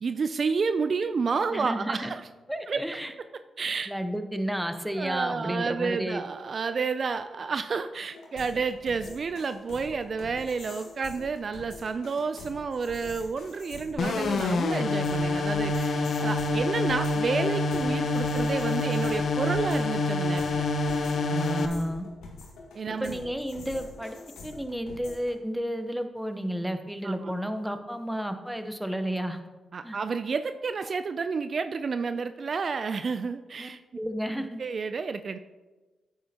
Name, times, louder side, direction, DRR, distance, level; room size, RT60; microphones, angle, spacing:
voice 1, 0.0-2.3 2.7-2.8 3.6-3.9 5.0-20.7 22.7-23.2 27.0-27.3 29.7-33.8 34.6-35.4, right 5 dB, 55° right, 10 dB, 0.4 m, -30 dB
voice 2, 1.5-2.1 2.5-3.1 3.9-6.2 21.3-22.1 23.0-24.2 24.4-29.4 29.8-30.0 33.6-34.6, equal, 5° right, 8 dB, 0.9 m, -32 dB
sound 1, 8.1-25.3, left 3 dB, 90° left, 1.6 m, -45 dB
sound 2, 14.0-21.7, left 3 dB, 65° left, 0.7 m, -27 dB
9.3 x 8.4 x 2.8 m, 1.2 s
supercardioid pair, 55°, 0 cm